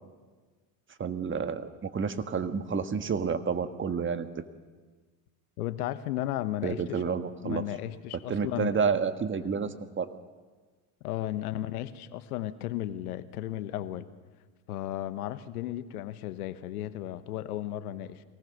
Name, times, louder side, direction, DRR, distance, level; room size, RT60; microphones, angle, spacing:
voice 1, 1.0-4.3 6.6-7.6 8.1-10.2, right 6 dB, 25° right, 10 dB, 1.5 m, -30 dB
voice 2, 5.6-7.0 7.4-8.9 11.0-14.1 14.7-18.2, left 13 dB, 90° left, 14 dB, 1.1 m, -34 dB
23.5 x 18.0 x 6.5 m, 1.4 s
supercardioid pair, 90°, 43 cm